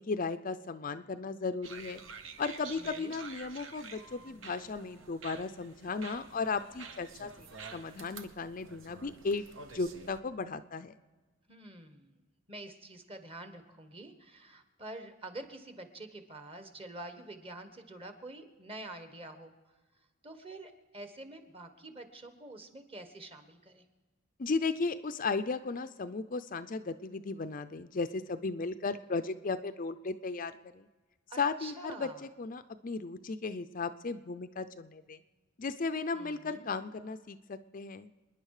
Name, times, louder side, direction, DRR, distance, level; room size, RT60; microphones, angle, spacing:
voice 1, 0.0-2.0 2.4-7.3 7.7-9.5 9.7-10.9 24.4-30.9 31.4-35.2 35.6-38.1, left 4 dB, 40° left, 10 dB, 0.5 m, -35 dB
sound 1, 1.6-10.2, right 5 dB, 70° right, 1.2 m, -49 dB
voice 2, 2.7-3.2 11.5-12.2 12.5-19.5 20.2-23.9 31.3-32.2 36.1-36.7, right 2 dB, 25° right, 7 dB, 1.4 m, -47 dB
27.5 x 10.0 x 4.9 m, 1.3 s
head